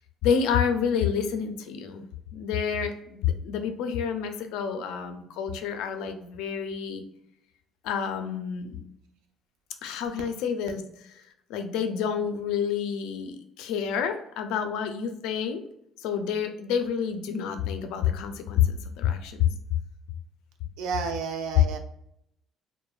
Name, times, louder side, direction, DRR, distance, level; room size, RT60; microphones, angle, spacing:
voice 1, 0.2-2.1 2.3-7.0 7.8-8.8 9.8-10.8 11.5-15.6 16.0-19.5, left 7 dB, 90° left, 7 dB, 0.4 m, -28 dB
voice 2, 20.8-21.8, right 6 dB, 85° right, 5 dB, 0.4 m, -31 dB
2.9 x 2.1 x 2.3 m, 0.76 s
cardioid pair, 140°, 0 cm